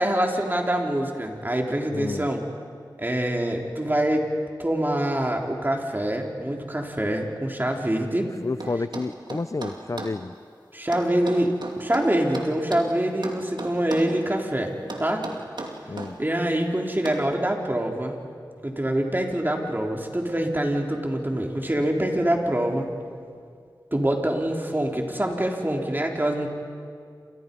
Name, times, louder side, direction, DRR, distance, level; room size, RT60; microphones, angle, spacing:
voice 1, 0.0-2.4 3.0-4.3 4.6-8.3 10.7-15.2 16.2-18.2 18.6-22.9 23.9-26.5, right 1 dB, 25° right, 1 dB, 3.8 m, -25 dB
voice 2, 1.9-2.3 8.4-10.3 15.9-16.2, left 3 dB, 45° left, 14 dB, 0.5 m, -30 dB
sound 1, 8.6-10.2 10.9-12.9 13.2-14.2 14.9-16.2 17.1-17.3, right 2 dB, 70° right, 2.8 m, -36 dB
29.0 x 27.5 x 5.5 m, 2.2 s
cardioid pair, 45°, 8 cm